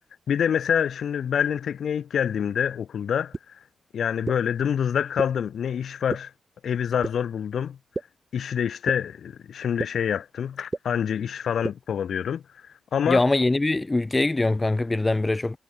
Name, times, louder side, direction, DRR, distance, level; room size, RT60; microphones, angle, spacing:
voice 1, 0.3-3.3 3.9-6.3 6.6-7.8 8.3-12.4 12.9-13.2, left 8 dB, 75° left, 3.4 m, -26 dB
sound 1, 3.3-3.4 4.3-4.4 5.2-5.3 6.1-6.2 7.0-7.1 7.9-8.0 8.9-9.0 9.8-9.9 10.7-10.8 11.6-11.7, right 3 dB, 30° right, 4.9 m, -28 dB
voice 2, 13.1-15.6, left 2 dB, 25° left, 0.5 m, -23 dB
cardioid pair, 55°, 0 cm